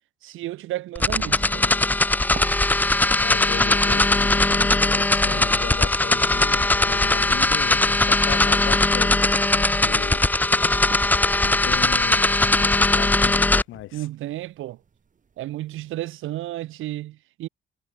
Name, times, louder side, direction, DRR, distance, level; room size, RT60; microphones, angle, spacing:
voice 1, 0.2-1.7 13.9-14.8 15.4-17.5, right 15 dB, 85° right, 2.1 m, -32 dB
sound 1, 1.0-13.6, left 2 dB, 10° left, 0.4 m, -20 dB
sound 2, 1.9-16.0, right 6 dB, 40° right, 3.3 m, -47 dB
voice 2, 3.2-10.2 11.4-14.1, left 15 dB, 90° left, 7.4 m, -36 dB
cardioid pair, 90°, 20 cm